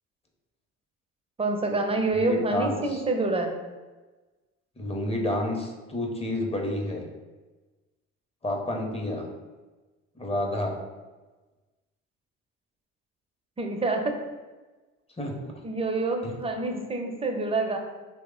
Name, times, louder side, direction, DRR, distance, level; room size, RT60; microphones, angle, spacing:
voice 1, 1.4-3.5 13.6-14.2 15.6-17.8, right 2 dB, 20° right, 3 dB, 0.6 m, -27 dB
voice 2, 2.1-3.0 4.8-7.0 8.4-9.3 10.2-10.8 15.2-15.5 16.2-16.3, left 1 dB, 20° left, 0 dB, 0.7 m, -30 dB
3.0 x 2.1 x 3.7 m, 1.2 s
hypercardioid pair, 60°, 32 cm